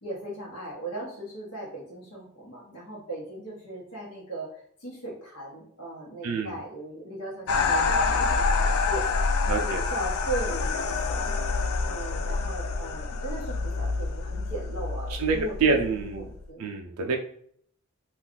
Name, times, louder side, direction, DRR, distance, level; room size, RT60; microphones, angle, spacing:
voice 1, 0.0-9.1 9.4-11.3 11.8-16.7, right 2 dB, 90° left, -5 dB, 1.0 m, -38 dB
sound 1, 7.5-16.4, left 4 dB, 70° left, 0.3 m, -27 dB
voice 2, 9.5-9.8 15.2-16.3 16.6-17.2, right 4 dB, 75° right, 3 dB, 0.4 m, -26 dB
2.4 x 2.3 x 3.7 m, 0.63 s
head